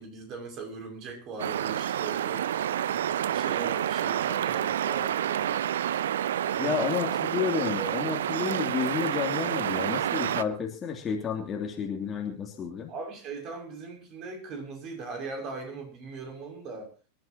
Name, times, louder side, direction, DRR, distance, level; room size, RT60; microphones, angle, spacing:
voice 1, 0.0-5.6 6.6-6.8 7.6-8.0 12.9-16.9, right 4 dB, 35° right, 3 dB, 6.3 m, -40 dB
sound 1, 1.4-10.4, right 10 dB, 60° right, 0.7 m, -29 dB
voice 2, 6.6-12.9, left 6 dB, 25° left, 2 dB, 2.8 m, -31 dB
26.0 x 12.5 x 2.9 m, 0.32 s
figure-of-eight pair, 90°, 0 cm